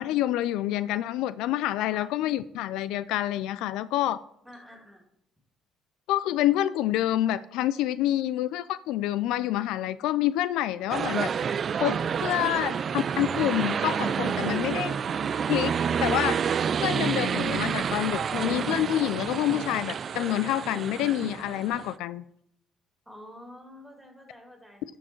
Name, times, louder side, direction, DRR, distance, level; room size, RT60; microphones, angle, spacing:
voice 1, 0.0-4.2 6.1-11.3 11.7-12.7 13.2-14.9 15.5-15.7 16.0-16.4 16.8-22.2, left 13 dB, 80° left, 16 dB, 0.3 m, -27 dB
voice 2, 4.4-5.0 12.3-12.7 23.1-24.8, left 1 dB, ahead, 2 dB, 2.5 m, -47 dB
sound 1, 10.9-21.9, right 7 dB, 45° right, 0.3 m, -29 dB
12.0 x 4.6 x 4.4 m, 0.73 s
supercardioid pair, 85°, 0 cm